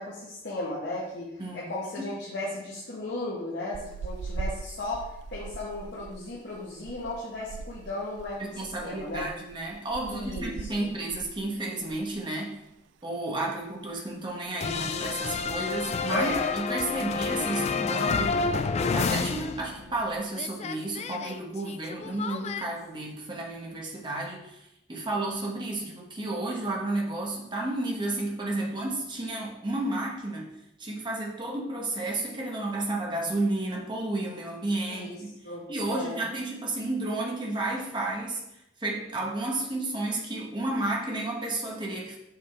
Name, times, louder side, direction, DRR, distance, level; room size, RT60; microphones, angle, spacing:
voice 1, 0.0-1.3 1.5-9.2 10.1-10.9 16.1-16.5 34.9-35.2 35.4-36.2, left 2 dB, 60° left, -6 dB, 1.4 m, -35 dB
sound 1, 3.7-12.3 12.5-12.7 13.1-14.0 14.3-14.7 14.9-15.0 15.2-15.7 16.2-16.7, right 4 dB, 70° right, 0.3 m, -41 dB
voice 2, 8.4-12.6 13.0-18.4 18.9-30.5 30.8-35.1 35.7-38.4 38.8-42.2, right 2 dB, 25° right, -2 dB, 1.3 m, -32 dB
sound 2, 14.6-20.1 20.3-22.7, left 4 dB, 35° left, 0.3 m, -29 dB
6.4 x 5.5 x 3.5 m, 0.88 s
head